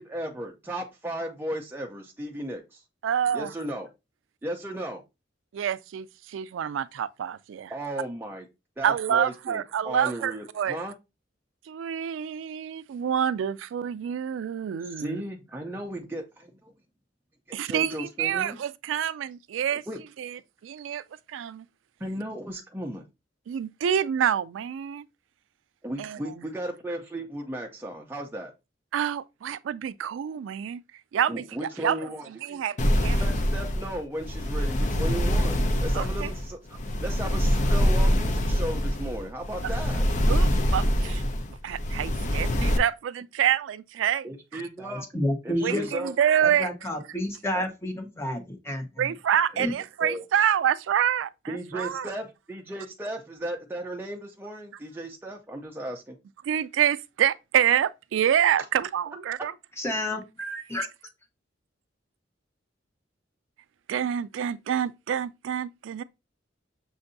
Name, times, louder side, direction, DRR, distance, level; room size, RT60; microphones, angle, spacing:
voice 1, 0.0-2.8 3.3-3.9 4.4-5.0 7.7-8.5 8.8-10.9 14.8-16.7 17.5-18.6 19.9-20.0 22.0-23.0 25.8-28.5 31.3-32.6 33.0-40.0 44.2-45.1 45.4-46.1 47.6-47.7 49.5-49.7 50.0-50.2 51.5-56.2, right 1 dB, 10° right, 0.5 m, -35 dB
voice 2, 3.0-3.5 5.5-7.7 8.8-10.8 11.7-15.2 17.5-19.8 20.2-21.0 21.3-21.7 23.5-25.0 26.0-26.3 28.9-30.8 31.1-33.2 35.9-36.3 40.3-41.2 41.5-44.6 45.6-46.7 49.0-52.1 56.4-59.5 63.9-66.0, right 9 dB, 90° right, 0.3 m, -27 dB
sound 1, 32.8-42.8, equal, 40° left, 0.5 m, -25 dB
voice 3, 44.8-45.9 46.4-49.0 49.6-49.7 59.8-60.8, left 1 dB, 15° left, 0.9 m, -30 dB
6.3 x 2.6 x 2.6 m
head